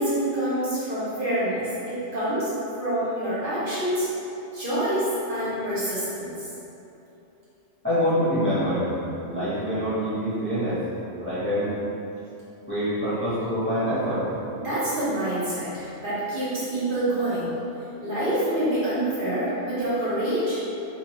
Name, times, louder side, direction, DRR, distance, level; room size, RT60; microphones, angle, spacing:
voice 1, 0.0-2.5 2.8-4.1 4.5-6.5 14.5-17.5 18.0-20.6, right 1 dB, 45° right, -12 dB, 1.3 m, -26 dB
voice 2, 7.8-9.0 9.2-10.8 11.2-11.7 12.7-14.3, equal, 10° left, -13 dB, 0.8 m, -25 dB
4.4 x 2.5 x 3.0 m, 2.9 s
omnidirectional pair, 1.3 m